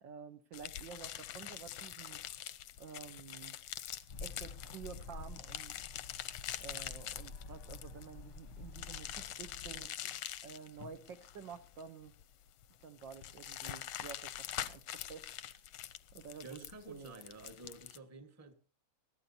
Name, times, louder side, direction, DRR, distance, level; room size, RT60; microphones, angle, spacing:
voice 1, 0.0-2.2 2.8-3.5 4.2-5.8 6.6-9.9 10.4-12.1 12.8-15.3 16.1-17.2, right 6 dB, 65° right, 1.5 m, -50 dB
sound 1, 0.5-18.0, left 12 dB, 85° left, 1.7 m, -45 dB
sound 2, 4.1-9.9, left 4 dB, 45° left, 1.0 m, -49 dB
voice 2, 16.4-18.5, right 3 dB, 10° right, 1.0 m, -51 dB
21.0 x 14.5 x 2.7 m
omnidirectional pair, 2.4 m